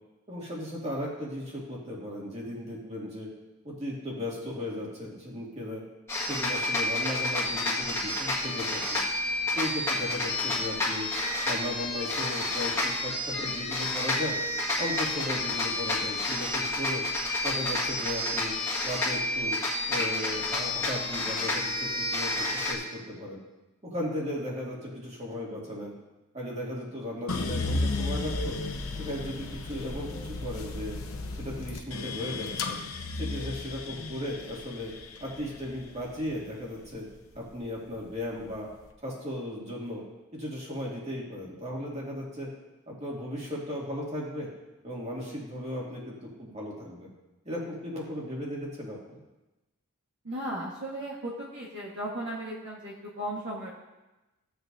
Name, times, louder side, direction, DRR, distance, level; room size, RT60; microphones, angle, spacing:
voice 1, 0.3-3.3 3.6-5.8 6.2-9.0 9.5-11.1 11.5-14.4 14.8-17.0 17.4-18.5 18.8-19.6 19.9-23.4 23.9-25.9 26.3-28.6 29.0-31.0 31.3-32.8 33.1-34.9 35.2-37.1 37.3-38.7 39.0-40.0 40.3-42.5 42.9-44.5 44.8-47.1 47.4-49.2, left 1 dB, 30° right, -4 dB, 2.3 m, -36 dB
sound 1, 6.1-22.7, left 2 dB, 15° left, 1.9 m, -30 dB
sound 2, 27.3-37.5 37.9-38.7, left 3 dB, 75° left, 0.8 m, -34 dB
voice 2, 50.2-53.7, right 1 dB, 60° right, -5 dB, 1.5 m, -36 dB
15.0 x 8.0 x 2.7 m, 1.0 s
head